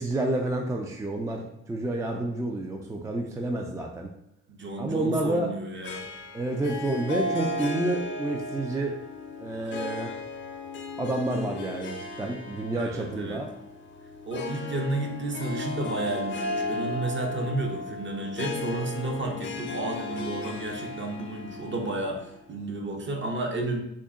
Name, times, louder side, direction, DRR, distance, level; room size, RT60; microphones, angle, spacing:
voice 1, 0.0-4.1 4.8-5.5 6.3-9.0 9.4-10.1 11.0-13.5, right 2 dB, 10° right, 1 dB, 0.3 m, -29 dB
voice 2, 4.5-6.0 12.7-13.4 14.3-23.8, right 2 dB, 40° right, 2 dB, 0.7 m, -32 dB
Harp, 5.8-22.6, left 2 dB, 40° left, 0.5 m, -35 dB
3.7 x 2.1 x 3.5 m, 0.81 s
cardioid pair, 90°, 30 cm